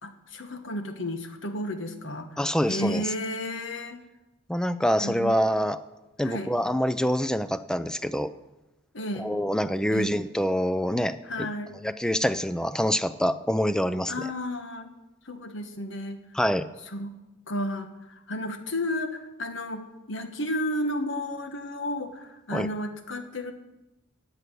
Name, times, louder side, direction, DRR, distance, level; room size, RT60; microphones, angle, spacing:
voice 1, 0.0-2.4 2.7-4.0 5.0-5.4 6.2-6.5 8.9-9.3 9.9-10.2 11.2-11.7 14.1-14.9 15.2-16.2 16.9-17.2 17.5-23.5, left 1 dB, 70° left, 7 dB, 1.5 m, -32 dB
voice 2, 2.4-3.1 4.5-5.8 6.2-8.3 9.2-11.5 11.8-14.1 16.3-16.7 22.5-22.7, equal, 5° left, 13 dB, 0.4 m, -26 dB
15.0 x 9.6 x 6.2 m, 1.0 s
head